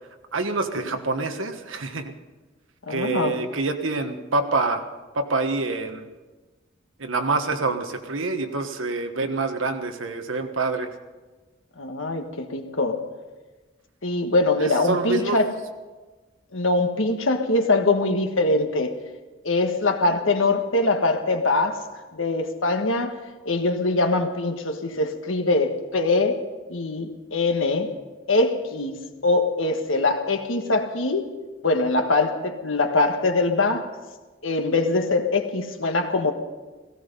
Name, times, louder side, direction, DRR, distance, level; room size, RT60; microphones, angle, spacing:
voice 1, 0.3-2.1 2.9-4.9 5.1-6.1 7.0-10.9 14.6-15.4, right 3 dB, 80° right, 6 dB, 1.4 m, -26 dB
voice 2, 2.9-3.4 11.8-13.1 14.0-15.5 16.5-18.9 19.4-21.8 22.1-23.1 23.4-26.4 26.7-27.9 28.3-31.2 31.6-33.9 34.4-36.3, left 2 dB, 90° left, 6 dB, 1.5 m, -23 dB
17.0 x 16.0 x 5.4 m, 1.3 s
head